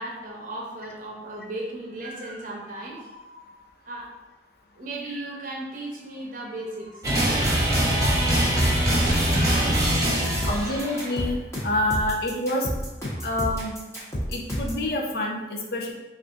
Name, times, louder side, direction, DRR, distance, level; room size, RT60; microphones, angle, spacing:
voice 1, 0.0-4.1 4.8-8.2 9.1-10.7 13.1-13.6, right 1 dB, 50° right, -2 dB, 0.8 m, -38 dB
sound 1, 7.0-11.2, right 1 dB, 20° right, 1.0 m, -22 dB
sound 2, 8.9-14.8, equal, 15° left, 0.9 m, -30 dB
voice 2, 10.4-11.4 11.6-12.7 13.2-13.8 14.3-15.9, left 1 dB, 60° left, 0 dB, 0.6 m, -27 dB
3.4 x 2.5 x 3.9 m, 1.0 s
head